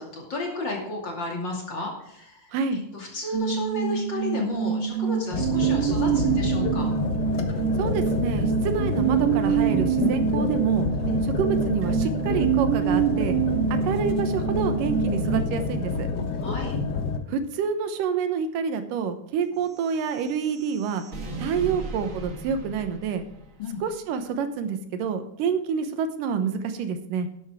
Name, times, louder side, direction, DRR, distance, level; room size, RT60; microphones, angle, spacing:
voice 1, 0.0-6.9 11.1-11.2 13.9-14.2 16.4-16.7 23.6-23.8, left 2 dB, 35° left, 0 dB, 2.8 m, -33 dB
sound 1, 3.3-15.4, right 9 dB, 65° right, 2.7 m, -26 dB
sound 2, 5.3-17.2, left 4 dB, 85° left, 0.9 m, -28 dB
voice 2, 7.8-10.9 11.2-13.4 13.8-16.1 17.3-21.0 21.4-23.2 23.8-27.3, right 6 dB, 85° right, 9 dB, 2.7 m, -28 dB
sound 3, 19.5-23.9, right 2 dB, 45° right, 1.0 m, -39 dB
11.5 x 11.0 x 3.6 m, 0.79 s
omnidirectional pair, 3.8 m